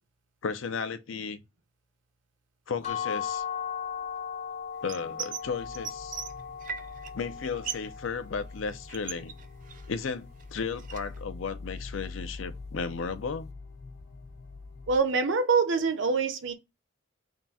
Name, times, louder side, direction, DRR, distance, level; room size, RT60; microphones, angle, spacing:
voice 1, 0.4-1.4 2.7-3.4 4.8-6.2 7.1-9.3 9.9-13.5, left 5 dB, 85° left, 0.5 m, -34 dB
sound 1, 2.8-8.6, left 8 dB, 35° left, 0.6 m, -37 dB
sound 2, 4.9-5.5 5.7-7.1 7.4-8.0 8.2-10.0 10.4-11.2, right 7 dB, 40° right, 0.4 m, -38 dB
sound 3, 5.4-15.0, left 3 dB, 60° left, 1.0 m, -45 dB
voice 2, 14.9-16.5, right 4 dB, 75° right, 0.7 m, -25 dB
3.7 x 2.3 x 4.1 m
head